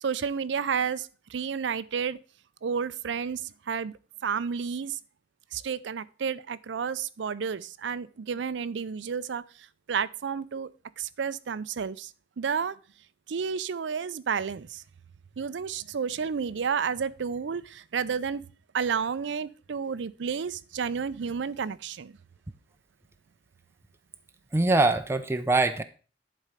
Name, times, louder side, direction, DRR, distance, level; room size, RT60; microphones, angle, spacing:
voice 1, 0.0-2.2 2.6-3.9 4.2-5.0 5.5-9.4 9.9-10.7 11.0-12.1 12.4-12.8 13.3-14.8 15.4-18.5 18.7-22.1, right 6 dB, 75° right, 0.5 m, -31 dB
voice 2, 24.5-25.8, right 2 dB, 15° right, 0.4 m, -23 dB
11.0 x 4.3 x 5.0 m
head